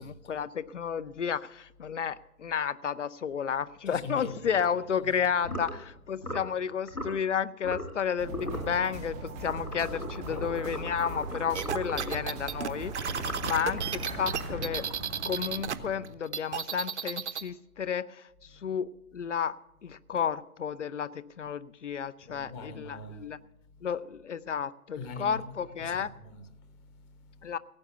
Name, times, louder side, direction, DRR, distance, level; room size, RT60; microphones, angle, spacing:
voice 1, 0.0-14.9 15.2-19.6 19.8-23.4 23.8-26.1 27.4-27.6, left 7 dB, 55° left, 0.7 m, -32 dB
voice 2, 3.9-4.6 5.0-5.1 10.3-10.5 11.9-12.2 18.5-18.7 22.2-23.3 25.0-25.5 25.8-27.5, left 3 dB, 15° left, 0.9 m, -44 dB
sound 1, 5.4-5.8 6.2-6.5 6.9-7.2 7.6-8.0 8.3-8.7 9.4-12.3 12.9-15.8, left 1 dB, 85° left, 3.4 m, -39 dB
sound 2, 8.2-16.0, right 2 dB, ahead, 0.5 m, -40 dB
sound 3, 11.5-15.8 16.0-17.5, right 7 dB, 50° right, 0.9 m, -33 dB
17.0 x 8.1 x 6.8 m
figure-of-eight pair, 135°, 44 cm